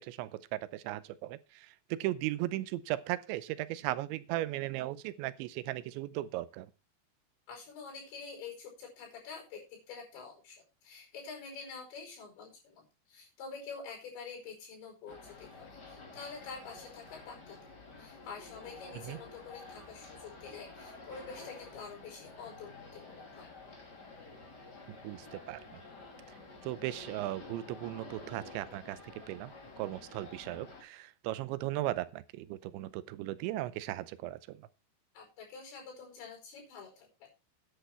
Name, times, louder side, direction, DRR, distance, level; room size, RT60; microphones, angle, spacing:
voice 1, 0.0-6.7 19.0-19.2 24.9-25.8 26.6-29.0 29.3-34.6, right 16 dB, 90° right, 3.0 m, -37 dB
voice 2, 7.5-9.6 9.9-17.6 18.0-23.5 35.2-37.3, left 5 dB, 80° left, 7.2 m, -47 dB
sound 1, 15.1-30.8, left 3 dB, 30° left, 2.7 m, -50 dB
10.5 x 10.0 x 4.4 m
omnidirectional pair, 5.1 m